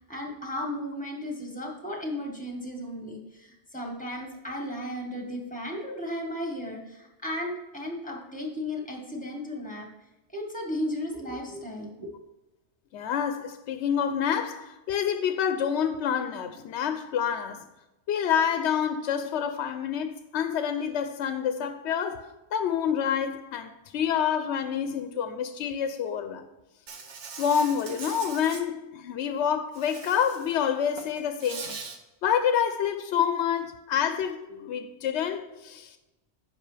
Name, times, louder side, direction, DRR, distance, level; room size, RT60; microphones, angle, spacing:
voice 1, 0.0-9.9 10.3-12.1, left 1 dB, 5° left, 1.4 m, -35 dB
voice 2, 12.9-17.7 18.1-26.5 27.4-31.8 32.2-36.0, left 8 dB, 80° left, 0.9 m, -28 dB
Insect, 26.9-28.6 29.7-30.5 30.9-32.0, right 5 dB, 85° right, 1.2 m, -41 dB
9.9 x 5.9 x 3.3 m
omnidirectional pair, 1.1 m